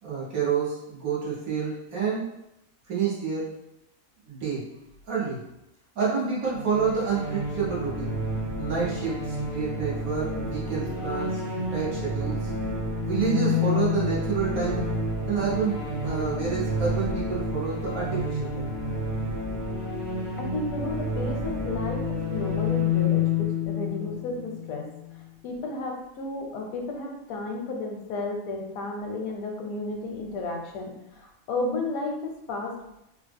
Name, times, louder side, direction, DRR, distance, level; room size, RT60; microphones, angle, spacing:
voice 1, 0.0-2.3 2.9-3.5 4.3-4.7 5.1-5.4 5.9-8.1 8.6-12.4 13.1-14.9 15.3-18.7, right 6 dB, 80° right, -7 dB, 1.6 m, -28 dB
sound 1, 6.5-25.2, left 3 dB, 45° right, 0.8 m, -29 dB
voice 2, 20.4-24.9 25.4-32.7, left 2 dB, 80° left, 2 dB, 1.1 m, -33 dB
3.5 x 2.0 x 3.4 m, 0.85 s
omnidirectional pair, 1.5 m